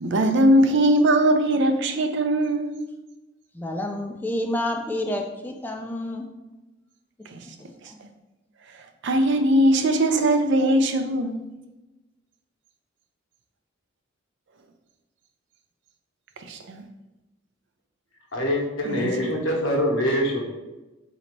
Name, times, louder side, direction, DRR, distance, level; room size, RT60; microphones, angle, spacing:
voice 1, 0.0-2.8 7.3-7.4 9.0-11.4 16.5-16.8 18.9-19.3, right 1 dB, 65° right, 7 dB, 0.5 m, -20 dB
voice 2, 3.5-6.3, left 1 dB, 10° left, 2 dB, 0.3 m, -29 dB
voice 3, 18.3-20.4, equal, 80° left, -1 dB, 1.2 m, -24 dB
4.0 x 2.8 x 4.5 m, 1.1 s
head